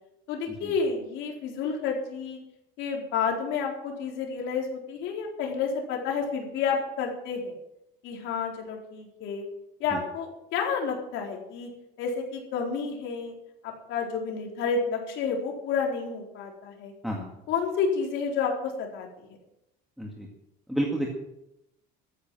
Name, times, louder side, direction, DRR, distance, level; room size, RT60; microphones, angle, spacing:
voice 1, 0.3-2.4 2.8-7.5 8.0-9.4 9.8-11.7 12.0-13.3 13.6-16.9 17.5-19.1, left 5 dB, 75° left, 0 dB, 4.4 m, -30 dB
voice 2, 20.7-21.1, right 1 dB, ahead, -1 dB, 2.0 m, -30 dB
13.5 x 10.0 x 7.6 m, 0.86 s
cardioid pair, 150°, 20 cm